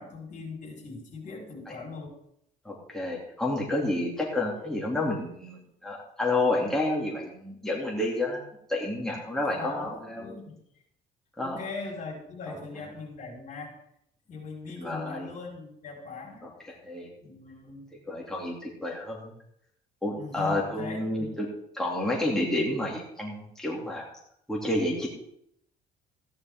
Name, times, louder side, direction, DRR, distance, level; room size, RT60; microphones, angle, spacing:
voice 1, 0.0-2.1 3.9-4.1 9.4-10.6 11.4-13.7 14.3-16.5 17.2-17.9 20.1-21.3, left 4 dB, 50° left, 0 dB, 4.5 m, -40 dB
voice 2, 2.6-8.4 8.7-10.2 11.4-11.6 14.8-15.3 16.4-17.1 18.1-19.3 20.0-21.5 21.7-24.1 24.5-25.1, left 1 dB, 5° left, -3 dB, 2.6 m, -30 dB
14.5 x 10.5 x 3.7 m, 0.73 s
cardioid pair, 110°, 17 cm